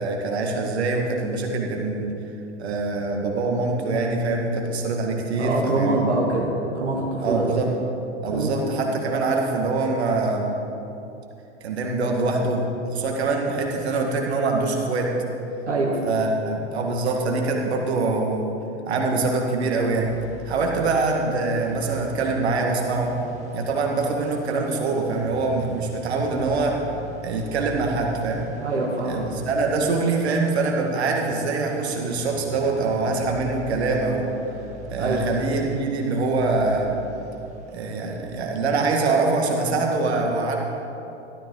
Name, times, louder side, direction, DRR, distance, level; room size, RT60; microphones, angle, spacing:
voice 1, 0.0-2.1 2.6-6.0 7.2-7.7 8.2-10.5 11.6-15.1 16.0-18.5 18.9-20.1 20.5-23.2 23.5-26.7 27.2-28.5 29.0-34.3 34.9-36.9 37.7-40.6, right 3 dB, 65° right, 1 dB, 1.9 m, -24 dB
voice 2, 5.4-7.6 8.3-8.5 15.7-16.0 28.6-29.2 35.0-35.3, right 2 dB, 80° right, -3 dB, 1.7 m, -24 dB
sound 1, 20.0-38.4, right 1 dB, 20° right, 2.0 m, -43 dB
14.5 x 13.0 x 3.9 m, 2.8 s
figure-of-eight pair, 90°, 35 cm